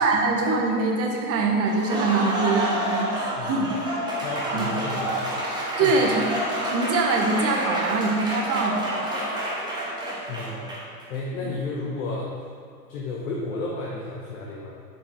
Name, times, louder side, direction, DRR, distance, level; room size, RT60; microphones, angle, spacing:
voice 1, 0.0-3.7 4.5-4.7 5.8-8.8, right 3 dB, 30° right, 1 dB, 1.1 m, -23 dB
Applause, 1.6-11.0, right 1 dB, 10° right, 1.4 m, -29 dB
voice 2, 4.2-5.1 5.8-6.1 10.3-10.6 11.1-12.3 12.9-14.8, left 3 dB, 60° left, -3 dB, 1.1 m, -32 dB
8.3 x 4.9 x 3.5 m, 2.3 s
figure-of-eight pair, 95°, 47 cm